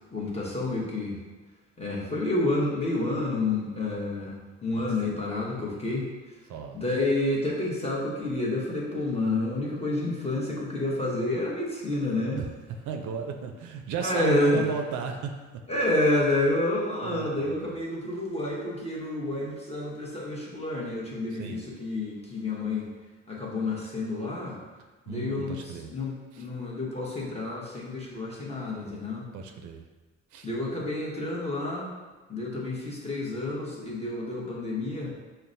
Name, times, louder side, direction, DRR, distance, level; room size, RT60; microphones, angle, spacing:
voice 1, 0.1-1.2 1.8-6.1 6.7-12.4 14.0-14.6 15.7-22.9 23.3-24.6 25.1-25.6 25.9-29.3 30.4-31.9 32.3-35.1, left 2 dB, 20° left, -4 dB, 0.9 m, -29 dB
voice 2, 6.5-6.8 12.1-12.5 12.8-15.4 17.0-17.8 21.3-21.7 25.1-25.9 26.3-26.5 29.3-29.8 30.3-30.5, right 5 dB, 75° right, 5 dB, 0.5 m, -35 dB
5.6 x 2.1 x 2.6 m, 1.3 s
cardioid pair, 90°, 30 cm